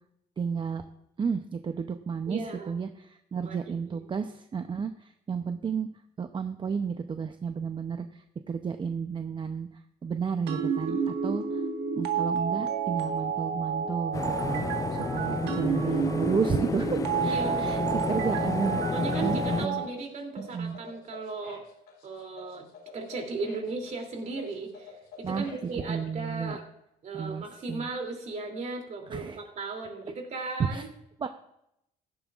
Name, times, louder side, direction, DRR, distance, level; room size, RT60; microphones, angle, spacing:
voice 1, 0.4-0.8 1.2-5.9 6.2-9.7 10.0-11.6 11.9-17.8 18.1-18.8 19.2-19.9 20.4-20.8 25.2-25.5 25.8-26.6 27.1-27.9 29.1-29.4 30.6-30.8 31.2-31.3, right 6 dB, 30° right, 8 dB, 0.6 m, -32 dB
voice 2, 2.3-2.7 3.4-4.0 10.9-11.2 17.2-17.6 18.9-21.6 22.0-22.7 22.9-26.6 27.0-30.9, right 3 dB, 45° right, 3 dB, 2.9 m, -36 dB
sound 1, 10.5-19.8, right 6 dB, 80° right, 1.6 m, -30 dB
sound 2, 14.1-19.7, left 5 dB, 20° left, 0.4 m, -31 dB
sound 3, 17.9-25.7, left 5 dB, 80° left, 3.6 m, -49 dB
15.5 x 12.0 x 2.5 m, 0.80 s
cardioid pair, 110°, 17 cm